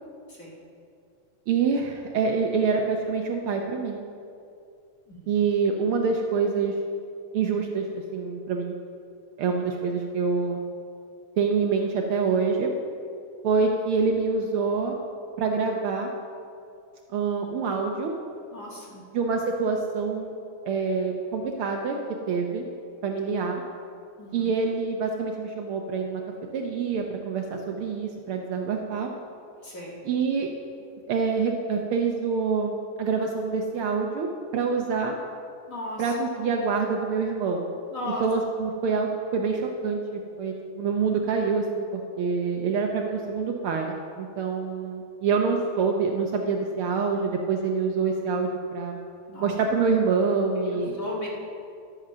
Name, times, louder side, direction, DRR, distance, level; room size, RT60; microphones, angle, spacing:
voice 1, 1.5-4.0 5.3-6.7 7.3-8.7 9.4-10.6 11.4-12.7 13.4-15.0 15.4-16.1 17.1-18.1 19.1-20.3 20.7-22.0 22.3-22.6 23.0-23.6 24.3-26.2 26.5-29.1 30.1-30.5 31.0-32.7 33.0-35.2 36.0-37.6 38.2-49.0 49.4-51.0, right 5 dB, 90° right, 2 dB, 1.2 m, -26 dB
voice 2, 5.1-5.4 18.5-19.0 24.2-24.5 29.6-30.0 35.7-36.1 37.9-38.2 49.3-49.5 50.7-51.3, left 1 dB, 35° left, -3 dB, 1.7 m, -36 dB
12.0 x 8.9 x 6.6 m, 2.5 s
omnidirectional pair, 3.5 m